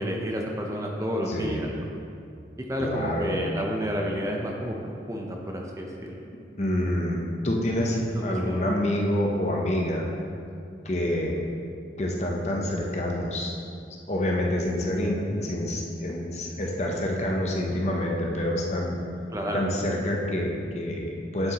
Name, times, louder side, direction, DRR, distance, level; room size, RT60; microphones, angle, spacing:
voice 1, 0.0-1.7 2.7-6.1 7.8-8.6 19.3-19.6, equal, 20° right, 0 dB, 0.7 m, -30 dB
voice 2, 1.3-1.7 2.8-3.4 6.6-10.1 10.8-11.4 12.0-13.5 14.1-19.0 19.5-21.5, left 1 dB, 40° left, -1 dB, 0.7 m, -27 dB
8.9 x 7.8 x 2.9 m, 2.5 s
head